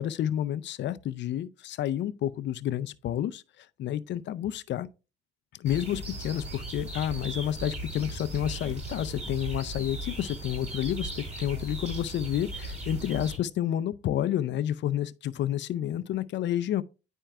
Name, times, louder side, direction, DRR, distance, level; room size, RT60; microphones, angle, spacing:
voice 1, 0.0-4.9 5.5-16.8, left 11 dB, 65° left, 0.5 m, -30 dB
sound 1, 5.6-13.4, right 1 dB, 35° right, 3.7 m, -37 dB
10.0 x 4.4 x 2.3 m
cardioid pair, 90°, 20 cm